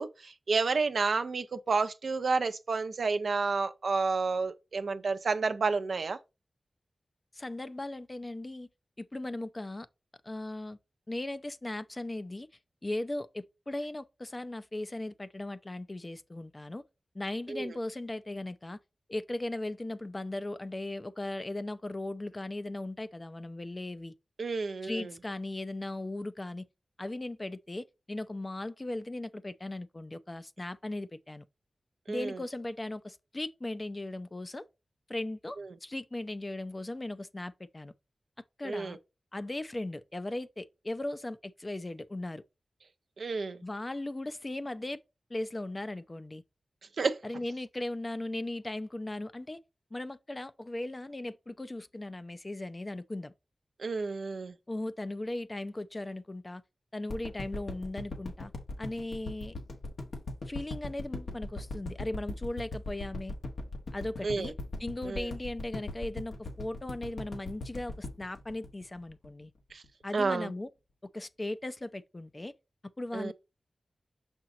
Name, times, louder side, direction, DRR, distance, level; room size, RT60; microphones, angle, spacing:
voice 1, 0.0-6.2 17.5-17.7 24.4-25.1 32.1-32.4 35.6-35.7 38.6-39.0 43.2-43.6 47.0-47.2 53.8-54.5 64.2-64.5 65.0-65.3 69.7-69.8 70.1-70.5 73.1-73.3, right 4 dB, 80° right, 0.6 m, -30 dB
voice 2, 7.3-8.7 9.0-9.9 10.2-10.8 11.1-12.5 12.8-16.8 17.1-18.8 19.1-24.1 24.8-26.6 27.0-31.4 32.1-34.7 35.1-37.9 38.6-39.0 39.3-42.4 43.6-45.0 45.3-46.4 47.2-49.6 49.9-53.3 54.7-56.6 56.9-58.5 58.8-59.5 60.4-63.3 63.9-64.5 64.8-69.5 70.0-70.7 71.1-72.5 73.0-73.3, left 1 dB, 35° left, 0.6 m, -37 dB
sound 1, 57.1-69.4 69.8-69.9, left 2 dB, 85° left, 1.4 m, -39 dB
6.1 x 4.4 x 3.8 m
cardioid pair, 40°, 0 cm